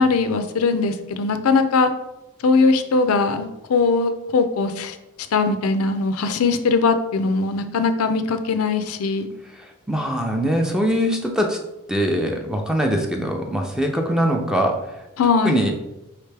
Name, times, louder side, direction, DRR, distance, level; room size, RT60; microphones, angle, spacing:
voice 1, 0.0-1.9 2.4-5.0 5.3-9.3 15.2-15.6, left 4 dB, 75° left, 9 dB, 0.4 m, -20 dB
voice 2, 9.6-11.6 11.9-14.8 15.4-15.7, equal, 5° right, 2 dB, 0.5 m, -22 dB
4.9 x 3.3 x 3.3 m, 0.95 s
head